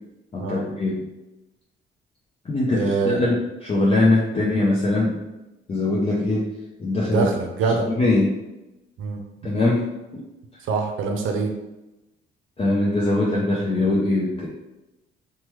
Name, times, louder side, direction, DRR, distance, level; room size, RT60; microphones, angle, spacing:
voice 1, 0.3-1.1 2.4-5.2 5.7-6.5 6.8-7.3 7.6-8.3 9.4-9.9 10.1-10.2 12.6-14.5, left 2 dB, 30° left, -4 dB, 0.6 m, -22 dB
voice 2, 2.7-3.2 4.0-4.2 7.1-7.9 9.0-9.2 10.7-11.5, right 4 dB, 80° right, 4 dB, 0.5 m, -24 dB
3.1 x 2.2 x 3.0 m, 0.98 s
cardioid pair, 90°, 20 cm